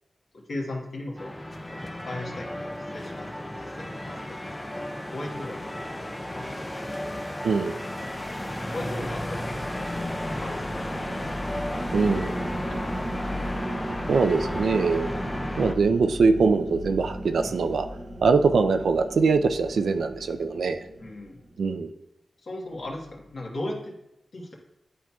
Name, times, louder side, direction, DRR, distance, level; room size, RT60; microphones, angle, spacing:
voice 1, 0.3-1.4 1.7-3.3 3.6-5.9 6.3-7.0 8.7-10.0 10.4-12.4 12.7-13.1 17.4-17.7 21.0-21.4 22.4-23.9 24.3-24.5, left 1 dB, 55° left, -1 dB, 1.3 m, -38 dB
sound 1, 1.2-15.7, left 1 dB, 10° left, 0.5 m, -33 dB
voice 2, 7.4-7.8 11.9-12.3 14.1-15.1 15.6-17.9 18.2-20.8 21.6-21.9, right 4 dB, 90° right, 8 dB, 0.4 m, -22 dB
sound 2, 8.1-21.6, equal, 30° right, 0.6 m, -36 dB
11.0 x 4.3 x 2.3 m, 0.87 s
wide cardioid pair, 160°, 0 cm